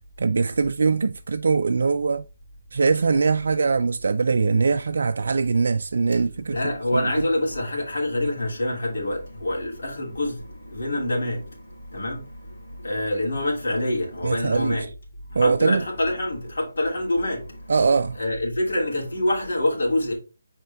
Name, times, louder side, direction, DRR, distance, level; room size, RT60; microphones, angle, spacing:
voice 1, 0.2-2.2 2.7-6.6 6.9-7.3 14.2-14.9 15.4-15.9 17.7-18.2, right 4 dB, 60° right, 0.3 m, -22 dB
voice 2, 6.5-10.3 10.7-11.4 11.9-12.2 12.8-14.8 15.4-17.4 18.2-20.1, left 1 dB, 65° left, 2.9 m, -25 dB
6.6 x 4.4 x 3.4 m
hypercardioid pair, 165°, 0 cm